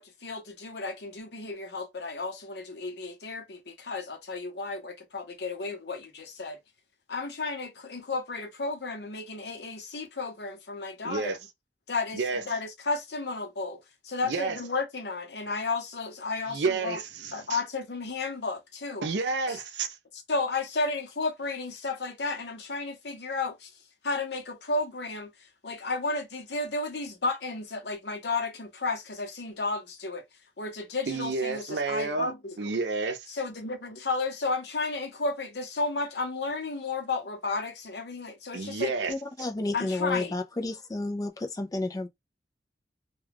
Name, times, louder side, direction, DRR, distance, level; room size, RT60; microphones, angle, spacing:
voice 1, 0.0-6.6 7.1-11.4 11.9-17.0 17.3-19.1 19.5-19.6 20.1-23.7 24.0-30.2 30.6-32.7 33.3-38.9 39.7-40.4, left 3 dB, 70° left, 0.8 m, -33 dB
voice 2, 11.0-11.4 12.1-12.4 14.2-14.6 16.5-17.6 19.0-20.0 31.1-32.3 32.6-33.3 38.5-39.1, right 4 dB, 85° right, 0.6 m, -30 dB
voice 3, 39.1-42.1, left 2 dB, 20° left, 0.4 m, -31 dB
2.3 x 2.2 x 3.4 m
head